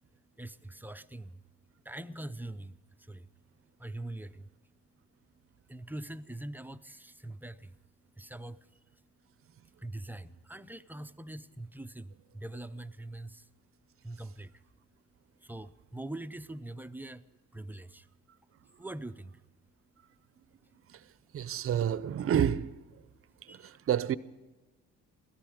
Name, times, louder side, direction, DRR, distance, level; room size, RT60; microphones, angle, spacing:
voice 1, 0.4-1.4 1.8-3.3 3.8-4.5 5.7-7.8 8.2-8.6 9.8-13.5 14.0-14.5 15.4-17.2 17.5-18.1 18.8-19.4 23.5-23.7, right 1 dB, 5° right, 0.5 m, -43 dB
voice 2, 21.3-22.8 23.4-24.2, right 9 dB, 45° right, 0.6 m, -29 dB
17.0 x 13.5 x 5.0 m
cardioid pair, 90°, 30 cm